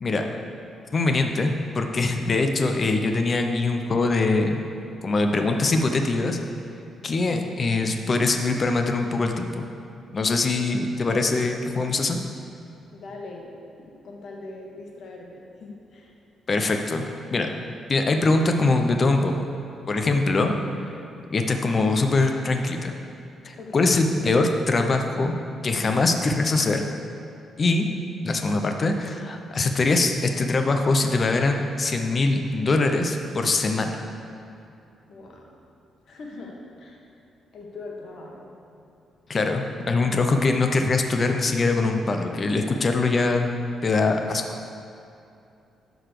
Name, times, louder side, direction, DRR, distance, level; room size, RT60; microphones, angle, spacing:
voice 1, 0.9-4.6 5.0-6.4 7.0-9.6 10.1-12.2 16.5-17.1 17.3-17.5 17.9-19.5 19.9-20.5 21.3-22.9 23.4-25.4 25.6-26.8 27.6-27.8 28.2-34.0 39.3-43.5 43.8-44.4, left 3 dB, 30° left, 5 dB, 0.6 m, -23 dB
voice 2, 12.9-13.5 13.8-16.1 23.6-23.9 35.1-35.5 36.1-37.0 37.5-38.5, left 2 dB, 55° left, -1 dB, 1.4 m, -41 dB
11.5 x 4.0 x 6.7 m, 2.6 s
cardioid pair, 165°, 0 cm